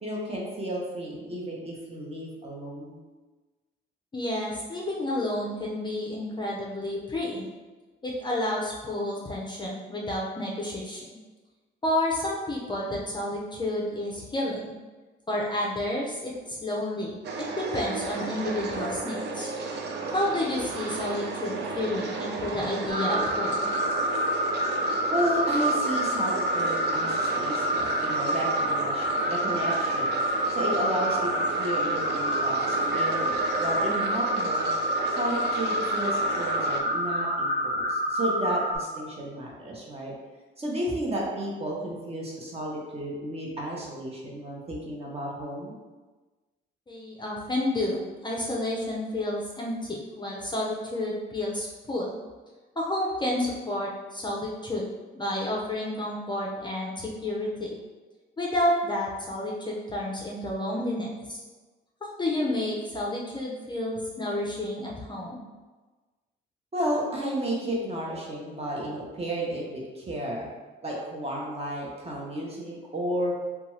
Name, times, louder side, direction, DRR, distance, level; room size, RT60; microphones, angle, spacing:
voice 1, 0.0-3.0 25.1-30.2 30.5-34.7 35.2-40.1 40.6-45.7 66.7-70.5 70.8-73.3, right 1 dB, 30° right, -3 dB, 0.8 m, -32 dB
voice 2, 4.1-7.5 8.0-11.2 11.8-14.7 15.3-19.5 20.1-23.7 46.9-52.2 52.8-54.8 55.1-57.8 58.4-61.4 62.0-65.4, left 1 dB, 25° left, -3 dB, 0.5 m, -30 dB
sound 1, 17.2-36.8, right 3 dB, 60° right, 0.4 m, -34 dB
sound 2, 22.9-38.8, equal, 75° right, 1.3 m, -27 dB
2.6 x 2.3 x 3.0 m, 1.3 s
cardioid pair, 90°, 20 cm